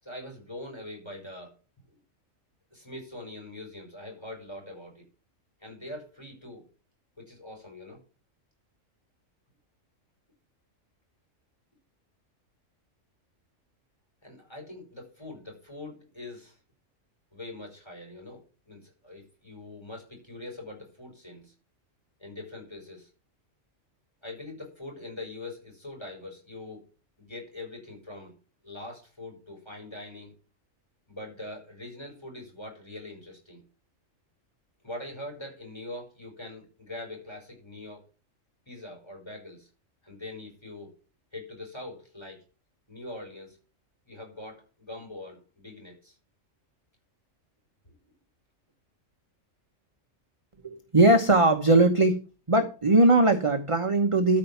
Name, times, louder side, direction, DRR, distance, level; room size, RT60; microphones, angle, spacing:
voice 1, 0.0-1.5 1.9-2.0 2.7-5.0 5.6-6.7 7.2-8.0 14.2-16.6 17.3-21.5 22.2-23.1 24.2-26.9 27.2-28.3 28.6-30.4 31.1-33.6 34.8-38.0 38.7-39.7 40.0-40.9 41.3-42.4 42.9-43.6 44.1-46.2 47.8-47.9, left 2 dB, 20° left, 5.5 m, -43 dB
voice 2, 50.6-52.2 52.5-54.4, right 2 dB, 25° right, 1.1 m, -20 dB
13.5 x 5.4 x 5.8 m
omnidirectional pair, 1.3 m